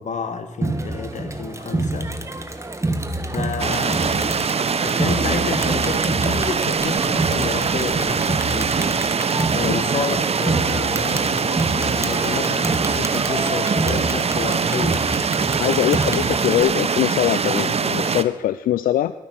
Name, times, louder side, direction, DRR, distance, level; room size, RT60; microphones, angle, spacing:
voice 1, 0.0-2.1 3.3-15.3, left 5 dB, 55° left, 9 dB, 1.6 m, -30 dB
Crowd, 0.6-16.6, right 2 dB, 20° right, 1.5 m, -28 dB
sound 1, 3.6-18.2, right 5 dB, 45° right, 0.8 m, -22 dB
voice 2, 15.6-19.1, left 12 dB, 85° left, 13 dB, 0.4 m, -22 dB
12.0 x 9.2 x 7.1 m, 1.1 s
cardioid pair, 60°, 14 cm